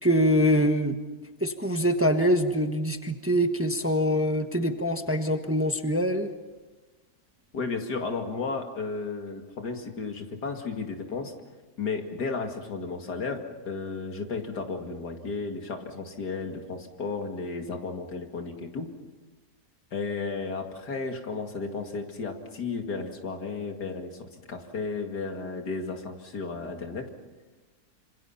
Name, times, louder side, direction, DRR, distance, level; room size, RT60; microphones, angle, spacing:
voice 1, 0.0-1.0 1.4-6.3, equal, 10° right, 6 dB, 1.2 m, -24 dB
voice 2, 7.5-11.3 11.8-18.9 19.9-24.2 24.5-27.1, left 4 dB, 90° left, 4 dB, 2.8 m, -33 dB
26.5 x 26.5 x 5.8 m, 1.2 s
omnidirectional pair, 1.7 m